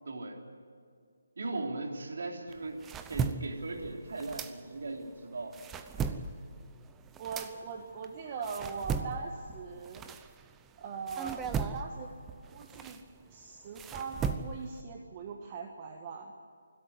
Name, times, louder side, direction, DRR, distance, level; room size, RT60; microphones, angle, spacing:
voice 1, 0.0-0.4 1.4-2.8 3.1-5.6 6.0-6.2, right 2 dB, 60° right, 2 dB, 3.3 m, -38 dB
sound 1, 2.5-5.0 5.4-10.7 11.1-14.8, right 6 dB, 10° right, 0.7 m, -37 dB
voice 2, 7.2-10.0 10.8-12.1 12.5-13.0 13.3-16.3, right 5 dB, 30° right, 2 dB, 1.6 m, -41 dB
24.5 x 13.0 x 9.7 m, 2.2 s
figure-of-eight pair, 150°, 0 cm